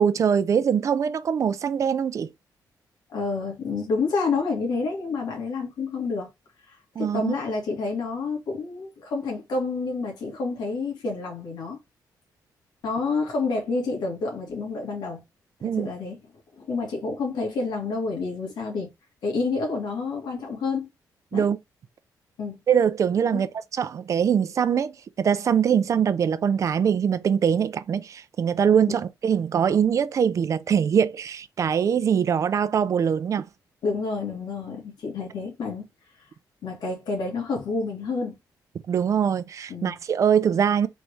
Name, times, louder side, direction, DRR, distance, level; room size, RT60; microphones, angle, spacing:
voice 1, 0.0-2.3 7.0-7.3 15.6-15.9 21.3-21.6 22.7-33.5 38.9-40.9, right 7 dB, 45° right, 0.5 m, -23 dB
voice 2, 3.1-6.3 6.7-11.8 12.8-15.2 15.6-16.2 16.6-18.9 19.2-20.9 21.3-21.5 22.4-22.6 23.3-23.5 28.9-29.0 33.8-35.8 36.6-38.3 39.7-40.0, left 4 dB, 75° left, 1.9 m, -29 dB
4.1 x 3.2 x 3.4 m
wide cardioid pair, 145°, 7 cm